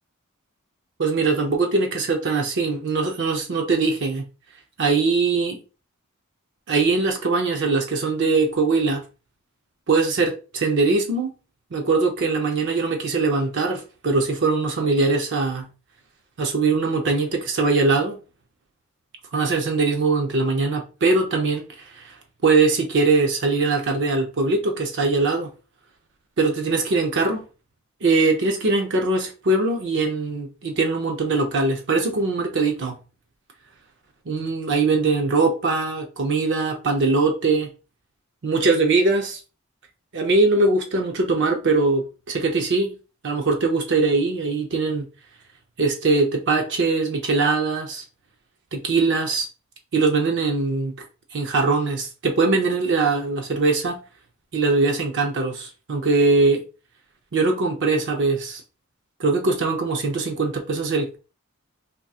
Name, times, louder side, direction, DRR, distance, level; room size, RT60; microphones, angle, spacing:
voice 1, 1.0-4.2 4.8-5.6 6.7-9.0 9.9-11.3 11.7-15.7 16.4-18.2 19.3-22.1 22.4-25.5 26.4-27.4 28.0-32.9 34.3-37.7 38.4-39.4 40.1-42.9 43.2-45.0 45.8-48.0 48.7-49.5 49.9-50.9 51.3-54.0 54.5-56.6 57.3-58.6 59.2-61.2, right 3 dB, 60° right, 0.6 m, -21 dB
3.6 x 2.7 x 2.3 m
head